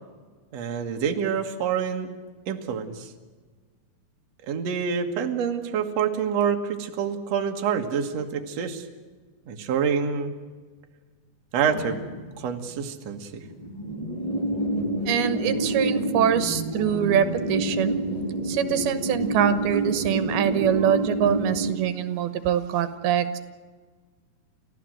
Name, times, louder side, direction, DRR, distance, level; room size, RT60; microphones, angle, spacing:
voice 1, 0.5-2.2 2.5-3.1 4.4-8.9 9.5-10.3 11.5-12.0 12.4-13.4, right 7 dB, 55° right, 4 dB, 2.4 m, -27 dB
sound 1, 11.7-12.8 13.1-13.2 13.4-21.7, right 1 dB, 10° left, 3.9 m, -28 dB
voice 2, 15.1-18.0 18.5-23.4, right 9 dB, 90° right, 11 dB, 3.1 m, -24 dB
30.0 x 15.0 x 7.8 m, 1.4 s
omnidirectional pair, 4.3 m